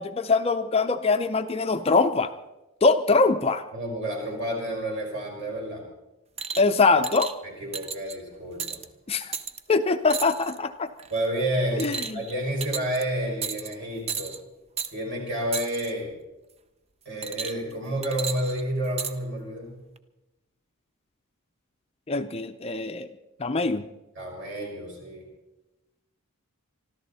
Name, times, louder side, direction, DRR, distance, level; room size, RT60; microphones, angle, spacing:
voice 1, 0.0-2.3 2.8-3.6 6.6-7.3 9.1-9.3 9.7-10.9 11.8-12.2 22.1-23.1 23.4-23.8, left 3 dB, 25° left, 9 dB, 0.5 m, -23 dB
voice 2, 3.7-5.8 7.6-8.8 11.1-14.3 14.9-16.1 17.1-19.8 24.2-25.2, right 1 dB, 50° right, -1 dB, 5.7 m, -30 dB
sound 1, 6.4-6.7 7.0-7.3 7.7-8.2 8.6-8.8 9.3-9.6 10.1-10.6 11.0-11.3 11.8-12.3 12.6-13.0 13.4-13.7 14.1-14.4 14.8-14.9 15.5-15.9 17.2-17.7 18.0-19.1 20.0-20.1, right 6 dB, 30° right, 0.6 m, -33 dB
25.0 x 13.5 x 4.1 m, 0.99 s
head